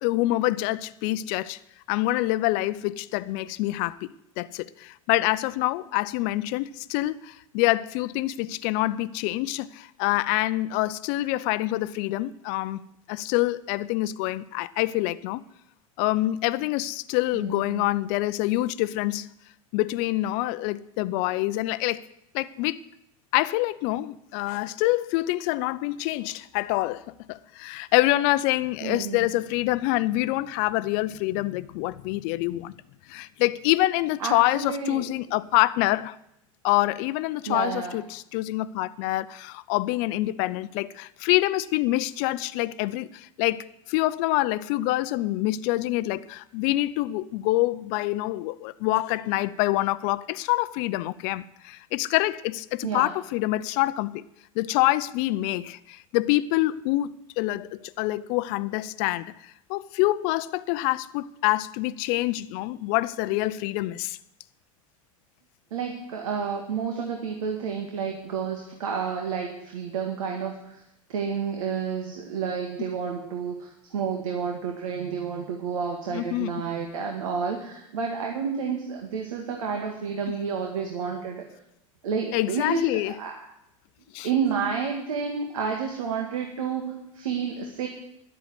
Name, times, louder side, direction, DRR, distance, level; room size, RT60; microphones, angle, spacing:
voice 1, 0.0-1.6 1.9-4.1 4.4-12.8 13.1-15.4 16.0-19.3 19.7-22.0 22.3-22.8 23.3-32.7 33.1-36.2 36.6-54.2 54.6-64.2 76.1-76.7 80.3-80.4 82.3-83.1 84.1-84.3, left 17 dB, 55° left, 0.6 m, -26 dB
voice 2, 17.3-17.9 28.8-29.3 34.2-35.0 37.5-38.0 52.8-53.1 65.7-70.8 71.1-81.4 82.0-83.4 84.2-87.9, right 6 dB, 75° right, 1.9 m, -30 dB
11.0 x 8.1 x 9.6 m
hypercardioid pair, 90°, 17 cm